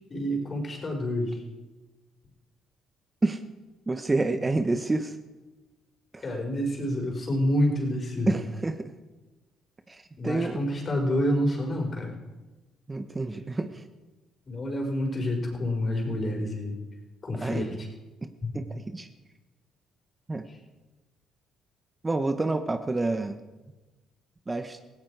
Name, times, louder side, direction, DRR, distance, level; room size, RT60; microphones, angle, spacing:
voice 1, 0.1-1.4 6.2-8.3 10.2-12.1 14.5-16.8 17.2-17.9 18.4-18.5 20.5-20.6, left 1 dB, 40° left, 1 dB, 4.7 m, -28 dB
voice 2, 3.9-5.2 6.1-6.2 8.3-8.9 9.9-10.6 12.9-13.8 17.4-17.7 18.5-19.1 20.3-20.5 22.0-23.4 24.5-24.8, right 2 dB, 25° right, 8 dB, 1.1 m, -28 dB
17.5 x 16.0 x 4.8 m, 1.2 s
supercardioid pair, 70°, 0 cm